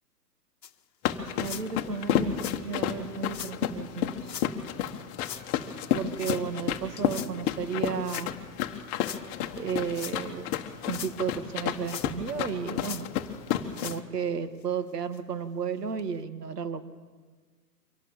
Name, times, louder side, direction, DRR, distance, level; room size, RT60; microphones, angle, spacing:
sound 1, 0.6-0.7 1.4-1.7 2.3-2.6 3.3-3.5 4.2-4.5 5.2-5.5 6.2-6.4 7.0-7.3 8.0-8.3 9.0-9.2 9.8-10.2 10.7-11.2 11.8-12.3 12.8-13.1 13.7-14.0 14.6-14.7 15.1-15.2 16.0-16.1, left 9 dB, 80° left, 1.1 m, -40 dB
sound 2, 1.0-14.0, left 10 dB, 25° left, 1.3 m, -32 dB
voice 1, 1.4-4.1 5.9-8.3 9.6-10.5 10.9-13.1 13.8-16.8, right 6 dB, 70° right, 10 dB, 2.0 m, -33 dB
24.0 x 17.5 x 7.4 m, 1.5 s
hypercardioid pair, 130°, 49 cm